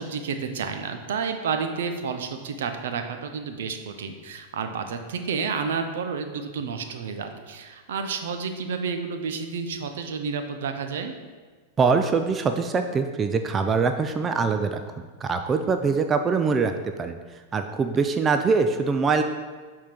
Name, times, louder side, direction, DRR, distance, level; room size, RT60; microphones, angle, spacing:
voice 1, 0.0-11.1, right 5 dB, 70° right, 7 dB, 0.6 m, -30 dB
voice 2, 11.8-14.8 15.2-19.2, right 5 dB, 25° right, 7 dB, 0.4 m, -23 dB
7.1 x 3.7 x 4.5 m, 1.4 s
hypercardioid pair, 100°, 0 cm